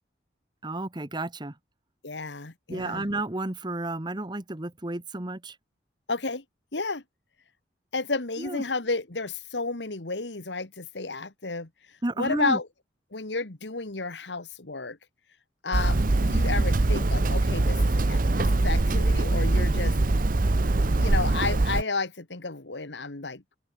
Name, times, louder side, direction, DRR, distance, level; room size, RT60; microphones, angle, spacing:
voice 1, 0.6-1.5 2.7-5.5 8.4-8.6 12.0-12.6, right 2 dB, 25° right, 1.3 m, -31 dB
voice 2, 2.0-3.1 6.1-6.4 6.7-7.0 7.9-12.7 13.1-15.0 15.6-19.9 21.0-23.4, left 3 dB, 80° left, 1.9 m, -32 dB
Hammer, 15.7-21.8, right 2 dB, 50° right, 0.8 m, -23 dB
open air
head